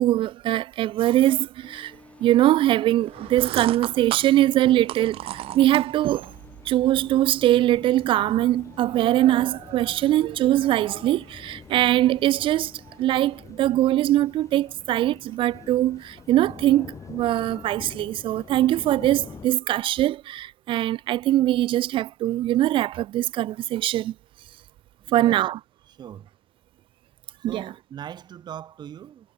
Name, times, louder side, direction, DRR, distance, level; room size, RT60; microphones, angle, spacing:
voice 1, 0.0-6.3 6.7-12.7 13.0-24.1 25.1-25.6 27.4-27.7, right 14 dB, 65° right, 0.5 m, -22 dB
sound 1, 1.6-13.4, left 2 dB, 15° left, 6.7 m, -53 dB
sound 2, 3.1-19.5, left 6 dB, 35° left, 4.4 m, -46 dB
sound 3, 3.1-6.3, right 15 dB, 85° right, 2.2 m, -34 dB
voice 2, 25.0-25.5 25.9-26.3 27.5-29.3, right 10 dB, 50° right, 2.3 m, -40 dB
cardioid pair, 150°, 9 cm